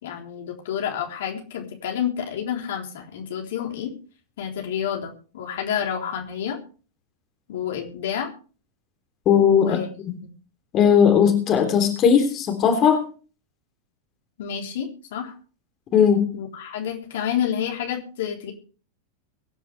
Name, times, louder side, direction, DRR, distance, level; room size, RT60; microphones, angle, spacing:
voice 1, 0.0-3.9 4.4-6.6 7.5-8.3 9.4-9.9 14.4-15.3 16.3-18.5, left 9 dB, 55° left, 1 dB, 3.7 m, -29 dB
voice 2, 9.2-9.8 10.7-13.0 15.9-16.3, left 7 dB, 30° left, 5 dB, 3.4 m, -17 dB
23.5 x 10.5 x 3.4 m, 0.37 s
figure-of-eight pair, 90°, 0 cm